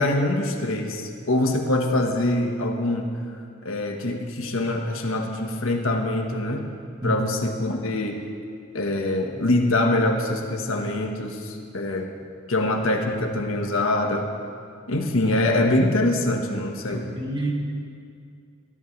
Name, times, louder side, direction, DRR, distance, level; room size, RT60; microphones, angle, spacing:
voice 1, 0.0-3.1 3.6-6.6 7.0-8.2 8.7-12.1 12.5-14.3 14.9-17.1, left 1 dB, 80° left, 2 dB, 1.5 m, -24 dB
voice 2, 16.9-17.5, right 1 dB, 20° right, -1 dB, 1.8 m, -28 dB
22.5 x 13.5 x 3.3 m, 2.4 s
head